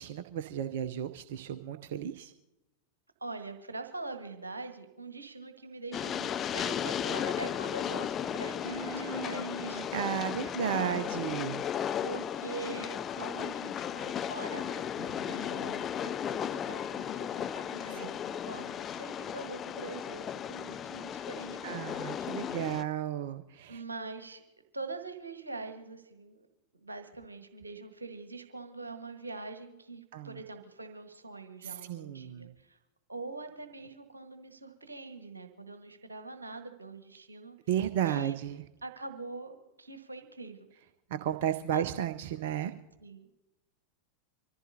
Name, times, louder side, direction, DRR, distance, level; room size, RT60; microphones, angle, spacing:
voice 1, 0.0-2.3 8.6-11.6 15.1-15.4 17.8-18.1 21.6-23.8 30.1-30.4 31.6-32.5 37.7-38.6 41.1-42.7, right 10 dB, 55° right, 11 dB, 0.6 m, -34 dB
voice 2, 3.2-9.9 10.9-11.0 12.0-14.9 15.3-22.0 23.7-24.4 24.7-26.5 26.8-32.8 33.1-37.6 38.0-38.4 38.8-40.7 41.7-41.9 43.0-43.3, right 3 dB, 80° right, 7 dB, 1.4 m, -43 dB
Train, 5.9-22.8, left 9 dB, 25° left, 0.4 m, -35 dB
25.0 x 15.0 x 2.8 m, 0.96 s
figure-of-eight pair, 90°, 0 cm